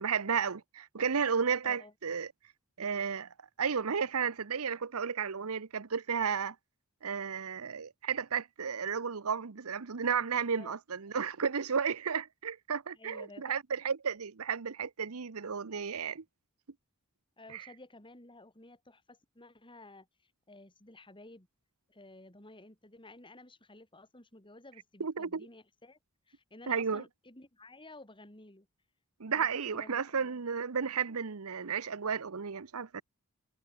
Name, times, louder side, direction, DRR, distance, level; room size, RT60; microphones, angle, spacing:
voice 1, 0.0-2.3 2.8-3.3 3.6-6.5 7.0-16.2 17.5-17.7 25.0-25.5 26.7-27.0 29.2-33.0, right 6 dB, 75° right, 0.8 m, -33 dB
voice 2, 1.6-1.9 10.5-10.8 12.9-13.6 17.4-21.5 21.9-26.0 26.3-28.7 29.3-30.3, left 2 dB, 20° left, 4.3 m, -53 dB
head